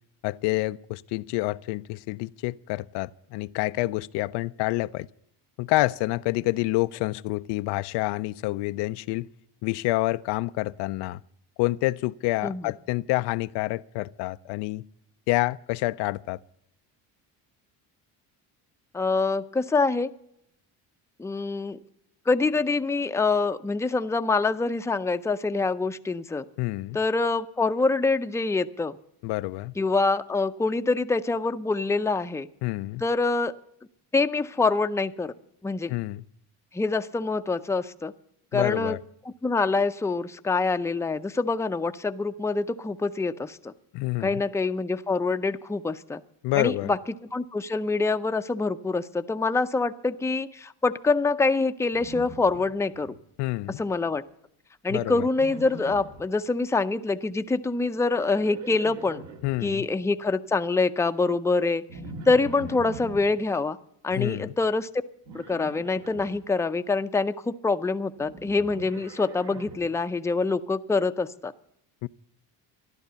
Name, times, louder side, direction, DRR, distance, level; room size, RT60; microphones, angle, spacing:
voice 1, 0.2-5.1 5.6-9.3 9.6-11.2 11.6-14.8 15.3-16.4 26.6-27.0 29.2-29.7 32.6-33.0 35.9-36.2 38.5-39.0 43.9-44.4 46.4-46.9 53.4-53.8 54.9-55.3 59.4-59.9 64.1-64.5 72.0-72.1, left 19 dB, 75° left, 0.5 m, -28 dB
voice 2, 18.9-20.1 21.2-21.8 22.3-26.4 26.9-29.0 29.8-32.5 33.0-33.5 34.1-35.3 35.6-35.9 36.7-38.1 38.5-39.0 39.4-43.7 44.2-46.2 46.5-47.0 47.3-53.1 53.8-54.2 54.8-59.2 59.6-61.8 62.3-63.8 64.0-64.9 65.3-71.5, left 3 dB, 5° left, 0.5 m, -25 dB
Livestock farm animals working animals, 51.9-53.2 53.5-54.0 55.3-56.3 57.9-59.6 61.9-63.3 65.3-66.4 68.2-69.9, right 2 dB, 70° right, 2.2 m, -42 dB
13.0 x 11.5 x 6.8 m
cardioid pair, 100°, 41 cm